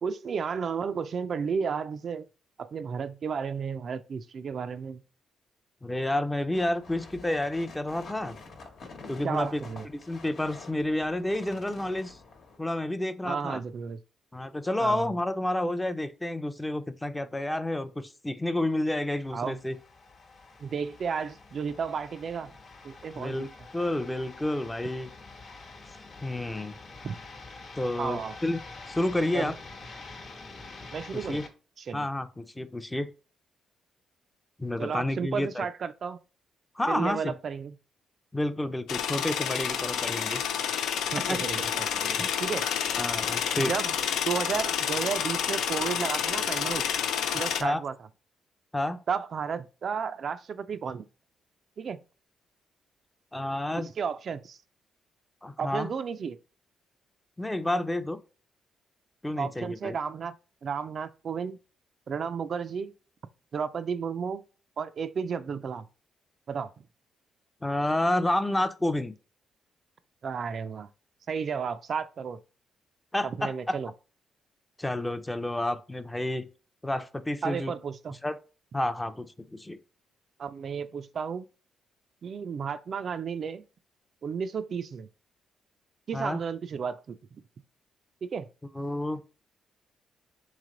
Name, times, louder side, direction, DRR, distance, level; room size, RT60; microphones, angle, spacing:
voice 1, 0.0-2.3 2.6-5.0 9.2-9.8 13.2-14.0 14.8-15.1 19.3-19.6 20.6-22.5 22.8-23.5 27.0-27.2 28.0-28.4 29.3-29.5 30.9-31.4 31.8-32.1 34.8-36.2 36.9-37.7 41.0-42.7 43.6-43.9 44.3-46.8 47.3-47.9 49.1-51.0 51.8-52.0 53.8-54.6 55.6-56.4 59.4-60.3 60.6-61.6 62.1-62.9 63.5-64.4 64.8-65.9 66.5-66.7 70.2-70.9 71.3-72.4 73.2-73.9 77.4-78.2 80.4-81.5 82.2-83.6 84.2-85.1 86.1-87.2 88.2-88.5, right 6 dB, 55° right, 0.3 m, -33 dB
voice 2, 5.8-8.4 9.1-9.6 10.1-12.2 12.6-13.6 14.3-19.8 23.1-25.1 26.2-26.7 27.8-28.6 28.9-29.5 31.3-31.4 31.9-33.1 34.6-35.7 36.8-37.3 38.3-40.4 41.2-41.4 42.2-42.3 43.0-43.7 47.6-47.8 48.7-49.0 53.3-53.9 55.4-55.9 57.4-58.2 59.2-60.0 67.6-69.1 73.1-73.8 74.8-76.5 76.8-77.7 78.2-78.4 78.7-79.8 86.1-86.4 88.8-89.2, left 1 dB, 10° left, 0.5 m, -30 dB
sound 1, 6.5-12.6, left 4 dB, 70° left, 1.1 m, -48 dB
sound 2, 19.0-31.5, left 3 dB, 50° left, 1.0 m, -47 dB
sound 3, 38.9-47.6, left 8 dB, 85° left, 0.4 m, -29 dB
3.6 x 3.2 x 3.7 m
cardioid pair, 95°, 0 cm